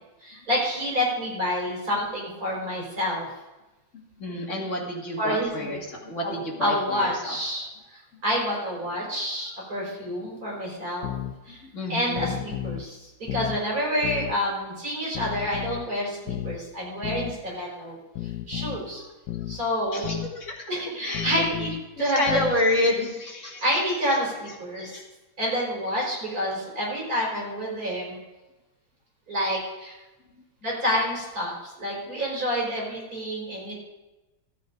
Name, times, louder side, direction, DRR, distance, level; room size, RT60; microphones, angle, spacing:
voice 1, 0.2-3.3 5.2-5.8 6.2-7.7 7.9-11.1 11.5-11.6 11.9-18.0 18.5-19.0 19.5-20.1 20.7-22.4 23.6-25.0 25.4-28.2 29.3-30.0 30.6-33.7, equal, 45° right, -3 dB, 5.0 m, -28 dB
voice 2, 3.9-7.4 8.1-8.2 11.5-12.4 18.5-18.6 18.9-19.1 19.9-20.7 21.0-21.3 22.0-24.0 24.8-25.0, left 1 dB, 35° left, -1 dB, 2.3 m, -29 dB
sound 1, 11.0-11.4 12.1-12.9 13.3-13.6 14.0-14.4 15.1-15.9 16.3-16.6 17.0-17.4 18.2-18.8 19.3-19.6 20.0-20.3 21.1-21.8 22.3-22.6, left 11 dB, 65° left, 1.2 m, -33 dB
13.0 x 8.4 x 5.2 m, 1.0 s
omnidirectional pair, 2.2 m